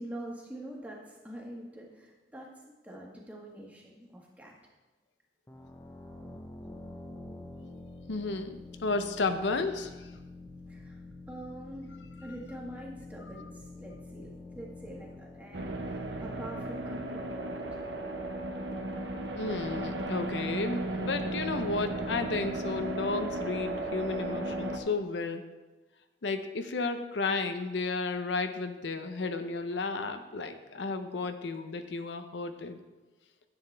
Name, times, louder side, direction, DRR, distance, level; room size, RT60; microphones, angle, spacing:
voice 1, 0.0-2.5 2.8-4.5 10.7-11.0 11.3-11.9 12.2-14.3 14.5-17.6, right 1 dB, 10° right, -2 dB, 1.5 m, -44 dB
sound 1, 5.5-17.0, left 2 dB, 15° left, 0.7 m, -47 dB
voice 2, 8.1-10.2 13.4-13.5 19.4-25.4 26.2-32.8, left 3 dB, 75° left, 8 dB, 0.6 m, -33 dB
sound 2, 15.5-24.8, right 2 dB, 75° right, 1.0 m, -35 dB
10.5 x 7.9 x 3.3 m, 1.2 s
head